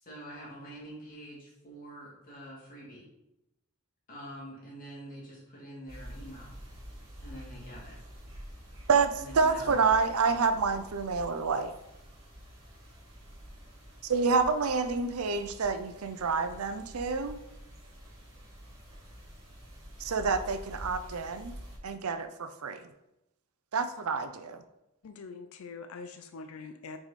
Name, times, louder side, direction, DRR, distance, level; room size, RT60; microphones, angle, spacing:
voice 1, 0.0-3.1 4.1-6.5 7.2-8.0 9.2-10.0, equal, 40° left, -5 dB, 2.6 m, -46 dB
sound 1, 5.9-21.8, equal, 25° right, 2.5 m, -48 dB
voice 2, 8.9-11.7 14.0-17.4 20.0-21.5 21.8-22.9 23.7-24.6, right 4 dB, 90° right, 10 dB, 0.6 m, -28 dB
voice 3, 25.0-27.0, left 4 dB, 80° left, 8 dB, 0.4 m, -44 dB
6.2 x 4.8 x 4.2 m, 0.90 s
head